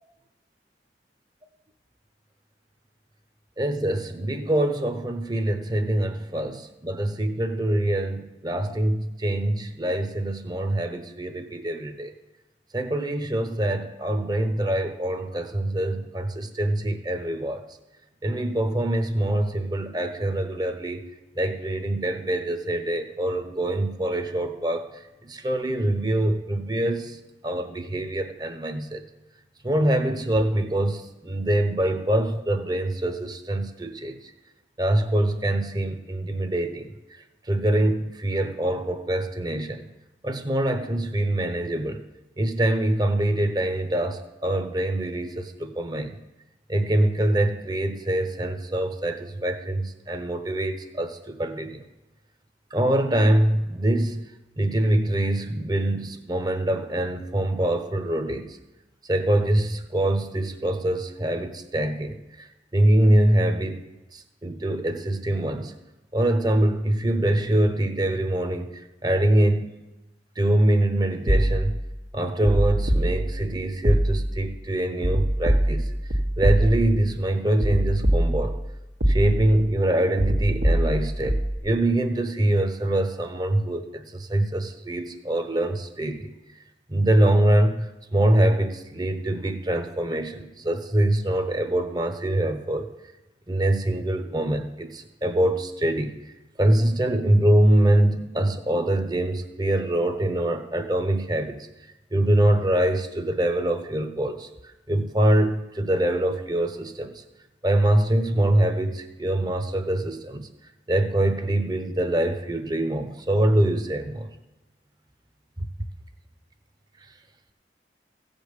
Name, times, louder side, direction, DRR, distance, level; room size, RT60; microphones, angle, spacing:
voice 1, 3.6-12.1 12.7-17.6 18.2-21.0 21.4-24.9 25.2-27.2 27.4-29.1 29.6-34.3 34.8-36.9 37.5-39.9 40.2-42.0 42.4-46.2 46.7-51.8 52.7-54.2 54.6-58.6 59.1-63.8 64.1-65.7 66.1-69.7 70.4-71.8 72.1-75.9 76.4-78.6 79.1-86.3 86.9-92.9 93.5-96.2 96.6-101.7 102.1-104.5 104.9-107.2 107.6-110.5 110.9-114.3 115.6-115.7, right 1 dB, 25° right, 8 dB, 0.9 m, -24 dB
sound 1, 71.3-71.9 72.4-73.5 73.8-74.5 75.0-77.1 77.6-78.7 79.0-79.6 80.2-81.6, right 1 dB, 80° right, 1.5 m, -23 dB
15.0 x 5.3 x 8.2 m, 1.0 s
head